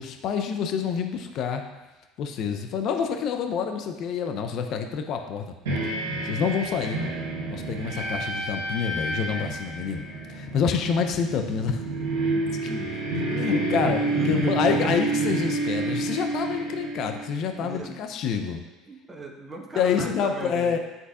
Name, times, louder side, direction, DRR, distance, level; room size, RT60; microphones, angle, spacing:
voice 1, 0.0-1.6 2.2-5.5 6.2-7.0 7.5-11.8 12.6-12.7 13.3-18.6 19.8-20.8, left 6 dB, 60° left, 6 dB, 0.6 m, -27 dB
sound 1, 5.6-17.7, right 2 dB, 85° right, 1.2 m, -29 dB
voice 2, 7.9-8.2 8.5-8.7 12.3-12.9 14.1-14.7 15.2-15.5 17.6-18.0 18.9-20.8, right 2 dB, 20° right, 0 dB, 1.2 m, -38 dB
9.8 x 3.9 x 2.4 m, 1.1 s
hypercardioid pair, 75°, 0 cm